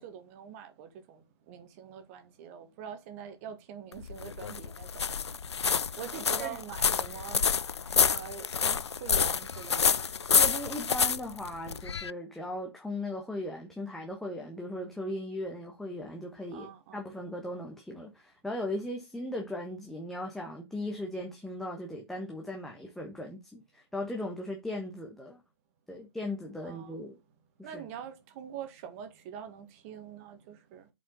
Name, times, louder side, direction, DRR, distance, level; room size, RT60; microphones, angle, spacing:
voice 1, 0.0-5.4 6.0-10.0 16.5-17.0 26.6-27.0 27.6-30.9, right 8 dB, 30° right, 1.7 m, -44 dB
sound 1, 3.9-12.1, left 6 dB, 75° left, 0.4 m, -28 dB
voice 2, 10.3-25.4 25.9-27.2 27.6-27.9, left 1 dB, ahead, 1.1 m, -38 dB
7.4 x 5.3 x 4.0 m
figure-of-eight pair, 130°, 14 cm